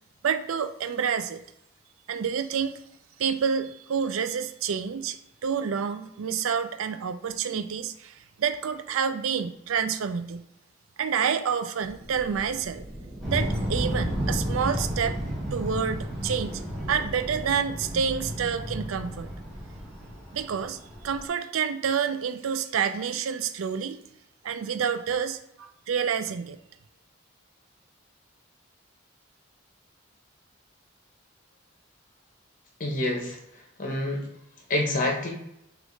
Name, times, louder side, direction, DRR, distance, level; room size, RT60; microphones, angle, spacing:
voice 1, 0.2-1.4 2.1-2.8 3.2-10.4 11.0-12.8 13.3-15.2 15.5-16.6 16.9-19.3 20.3-20.8 21.0-24.0 24.4-26.6, right 7 dB, 85° right, 9 dB, 0.4 m, -28 dB
sound 1, 11.8-16.7, right 1 dB, 30° right, 0.8 m, -46 dB
sound 2, 13.2-21.2, equal, ahead, 1.4 m, -32 dB
voice 2, 32.8-34.3 34.7-35.3, left 1 dB, 40° left, 0 dB, 1.0 m, -28 dB
6.1 x 2.5 x 3.2 m, 0.81 s
head